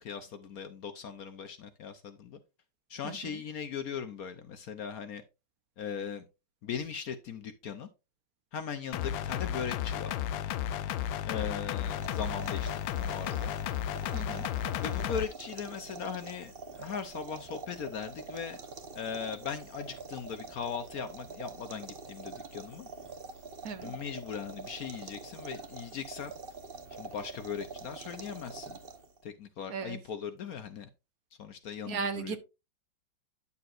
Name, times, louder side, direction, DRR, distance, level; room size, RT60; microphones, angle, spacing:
voice 1, 0.0-2.4 2.9-5.2 5.8-6.3 6.6-7.9 8.5-10.1 11.2-13.5 14.8-18.6 19.0-22.9 23.8-26.3 27.0-28.8 29.2-30.9 31.4-32.4, left 7 dB, 65° left, 1.0 m, -39 dB
voice 2, 3.0-3.4 14.1-14.4 23.6-24.0 29.7-30.0 31.9-32.4, right 5 dB, 60° right, 1.2 m, -36 dB
sound 1, 8.9-15.3, left 11 dB, 80° left, 1.3 m, -33 dB
sound 2, 11.8-29.2, right 4 dB, 40° right, 1.0 m, -45 dB
9.6 x 6.9 x 2.5 m
omnidirectional pair, 2.0 m